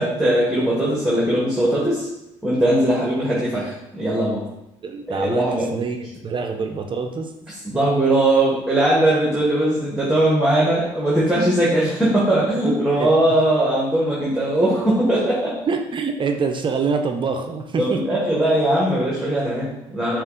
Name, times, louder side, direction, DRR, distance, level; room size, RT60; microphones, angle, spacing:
voice 1, 0.0-2.1 2.4-4.4 5.1-5.7 7.5-15.6 17.8-20.2, right 1 dB, 5° right, -6 dB, 1.5 m, -20 dB
voice 2, 4.8-5.5 5.7-7.3 13.0-13.1 15.7-18.0, right 5 dB, 40° right, 5 dB, 0.5 m, -25 dB
5.4 x 2.4 x 3.8 m, 0.88 s
supercardioid pair, 70°, 13 cm